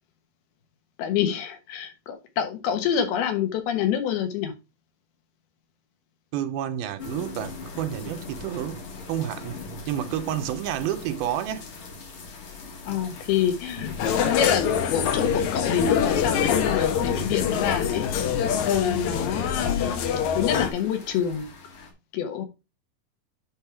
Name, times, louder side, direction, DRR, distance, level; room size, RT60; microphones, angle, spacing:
voice 1, 1.0-4.5 12.9-13.9 14.2-18.0 18.7-20.0 20.4-21.5 22.1-22.5, left 8 dB, 85° left, 3.2 m, -27 dB
voice 2, 6.3-8.8 9.1-9.6 9.9-11.7, right 11 dB, 85° right, 2.6 m, -29 dB
sound 1, 7.0-21.9, left 4 dB, 50° left, 1.7 m, -39 dB
sound 2, 14.0-20.7, left 8 dB, 70° left, 1.9 m, -25 dB
9.8 x 3.6 x 4.6 m
omnidirectional pair, 4.3 m